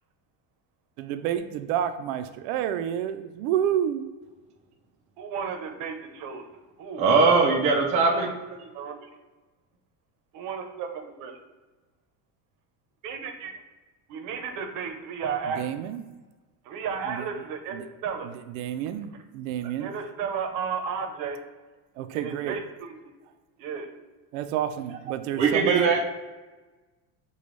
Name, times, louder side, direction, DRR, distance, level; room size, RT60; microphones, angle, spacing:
voice 1, 1.0-4.1 15.6-16.0 17.1-17.2 17.7-17.8 18.6-19.9 22.0-22.5 24.3-25.9, right 10 dB, 85° right, 9 dB, 0.5 m, -29 dB
voice 2, 5.2-6.5 6.8-7.5 8.0-9.1 10.3-11.4 13.0-13.5 14.1-15.7 16.6-17.7 18.0-18.3 19.8-21.4 22.1-23.0 23.6-23.9, right 6 dB, 50° right, 4 dB, 0.7 m, -34 dB
voice 3, 7.0-8.3 25.4-26.0, right 4 dB, 20° right, -1 dB, 0.3 m, -20 dB
6.7 x 2.3 x 3.1 m, 1.2 s
cardioid pair, 160°, 41 cm